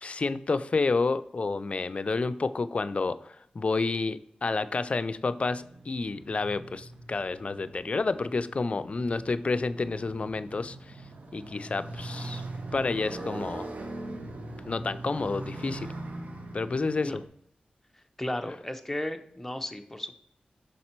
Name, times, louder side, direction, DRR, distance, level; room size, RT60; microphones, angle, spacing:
voice 1, 0.0-10.8 11.3-12.4 12.7-13.7 14.6-15.9 16.5-17.2, left 3 dB, 45° left, 13 dB, 0.4 m, -29 dB
Motorcycle, 4.9-17.3, right 2 dB, 55° right, 0.8 m, -41 dB
voice 2, 18.2-20.2, left 1 dB, 10° left, 6 dB, 0.6 m, -34 dB
6.6 x 4.2 x 4.4 m, 0.71 s
wide cardioid pair, 75°, 3 cm